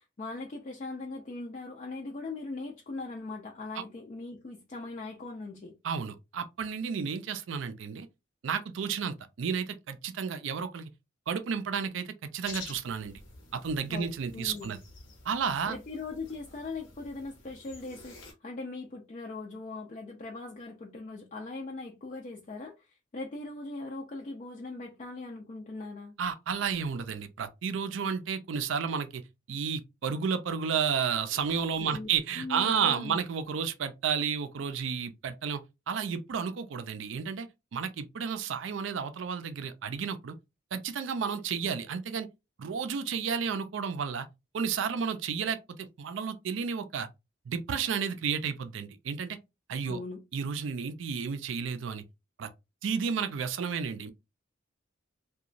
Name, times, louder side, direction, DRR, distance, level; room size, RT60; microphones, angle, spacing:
voice 1, 0.0-5.8 13.9-14.7 15.7-26.1 31.8-33.2 49.9-50.2, left 3 dB, 40° left, 0.4 m, -40 dB
voice 2, 5.8-8.1 8.4-10.9 11.3-13.2 13.5-14.8 15.2-15.8 26.2-29.2 29.5-35.6 35.9-40.3 40.7-42.3 42.6-44.3 44.5-47.1 47.5-49.4 49.7-50.0 50.3-52.0 52.4-52.5 52.8-54.1, right 6 dB, 75° right, 0.4 m, -32 dB
sound 1, 12.4-18.3, left 3 dB, 80° left, 0.9 m, -49 dB
2.8 x 2.2 x 2.4 m
head